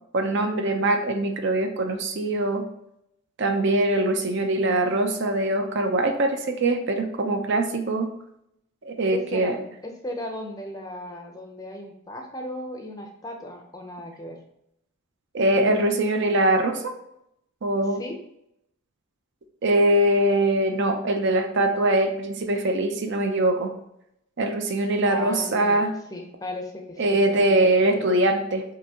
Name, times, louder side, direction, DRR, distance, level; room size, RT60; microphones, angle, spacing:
voice 1, 0.1-2.6 3.4-8.1 8.8-9.6 15.3-16.9 17.6-18.0 19.6-23.8 24.4-25.9 27.0-28.6, right 1 dB, 55° right, 5 dB, 0.5 m, -22 dB
voice 2, 9.1-14.4 18.0-18.2 25.0-25.8 26.1-27.6 28.0-28.2, left 1 dB, 15° left, 3 dB, 0.5 m, -36 dB
5.6 x 2.7 x 2.8 m, 0.77 s
head